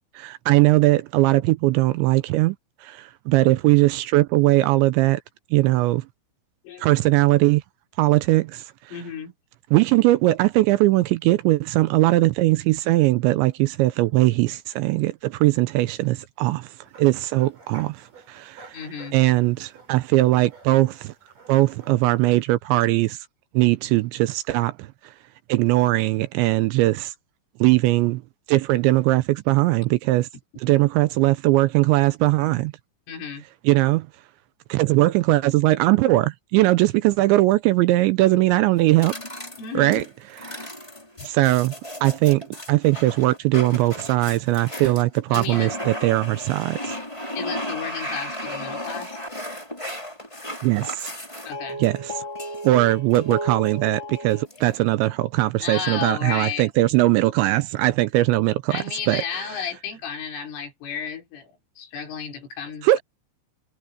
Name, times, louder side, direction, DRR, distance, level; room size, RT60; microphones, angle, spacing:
voice 1, 0.2-2.6 2.8-5.2 5.5-6.0 6.8-7.6 8.0-8.7 9.7-16.7 17.0-18.8 19.1-21.1 21.5-23.2 23.5-24.9 25.5-27.1 27.6-28.2 28.5-30.3 30.6-32.7 33.7-34.1 34.7-39.1 39.7-40.0 40.5-40.7 41.2-41.7 42.0-42.4 42.7-47.0 50.6-51.1 51.8-52.1 52.6-59.2 62.8-63.0, right 18 dB, 85° right, 2.7 m, -20 dB
voice 2, 8.9-9.3 18.7-19.2 33.1-33.5 39.6-40.1 41.2-41.3 45.3-45.7 47.4-49.2 51.4-51.8 55.6-56.7 58.7-63.0, left 7 dB, 75° left, 6.2 m, -33 dB
sound 1, 16.8-22.4, right 4 dB, 40° right, 7.3 m, -50 dB
sound 2, 38.8-54.8, equal, 5° left, 4.5 m, -34 dB
omnidirectional pair, 5.8 m